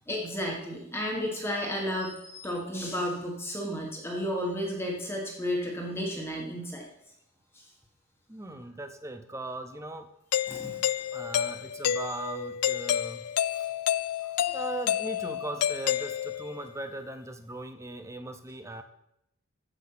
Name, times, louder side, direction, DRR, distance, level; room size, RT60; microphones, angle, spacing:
voice 1, 0.0-6.8 7.5-7.6 10.5-10.8, equal, 10° left, -1 dB, 1.5 m, -32 dB
voice 2, 8.3-10.1 11.1-13.7 14.5-18.8, right 2 dB, 15° right, 9 dB, 0.6 m, -39 dB
Doorbell, 10.3-16.6, left 10 dB, 90° left, 0.4 m, -29 dB
14.5 x 5.7 x 5.7 m, 0.82 s
head